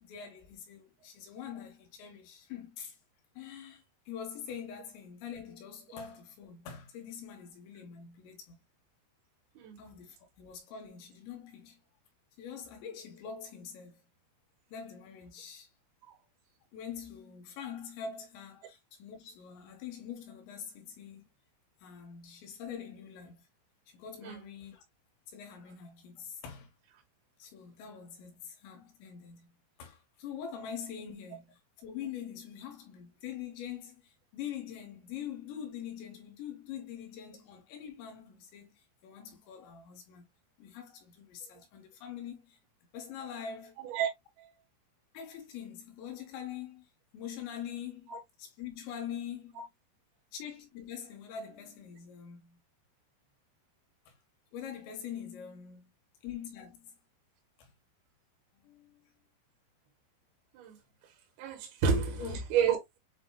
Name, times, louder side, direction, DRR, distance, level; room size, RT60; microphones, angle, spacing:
voice 1, 0.0-3.0 3.4-8.6 9.8-11.8 12.4-14.0 14.7-15.7 16.7-21.3 21.8-23.5 23.9-24.8 25.3-26.7 27.4-29.5 29.8-38.8 39.0-40.2 40.6-42.6 42.9-43.8 45.1-46.9 47.1-48.1 48.4-49.6 50.3-52.6 54.1-54.2 54.5-55.9 56.2-56.9 57.6-57.7 58.5-59.1 62.2-62.4, left 8 dB, 80° left, 3.5 m, -44 dB
voice 2, 43.8-44.1 44.4-44.5 48.1-48.2 49.6-49.7 60.5-60.8 61.4-63.0, right 6 dB, 65° right, 2.8 m, -30 dB
7.8 x 2.9 x 2.3 m
omnidirectional pair, 5.2 m